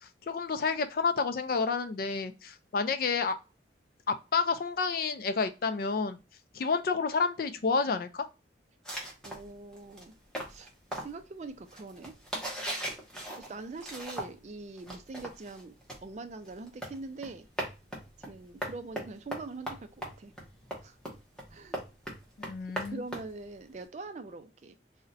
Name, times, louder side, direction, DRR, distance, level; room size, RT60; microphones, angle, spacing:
voice 1, 0.3-3.4 4.1-6.2 6.5-8.2 22.4-23.0, left 4 dB, 50° left, 10 dB, 0.3 m, -29 dB
sound 1, 8.9-14.5 14.8-23.8, right 1 dB, 5° left, 0.7 m, -40 dB
voice 2, 9.2-10.1 10.5-12.2 13.4-15.7 16.0-17.5 18.3-20.3 20.8-21.0 21.5-21.8 22.9-24.7, right 3 dB, 40° right, 9 dB, 0.3 m, -43 dB
2.5 x 2.1 x 3.9 m, 0.29 s
head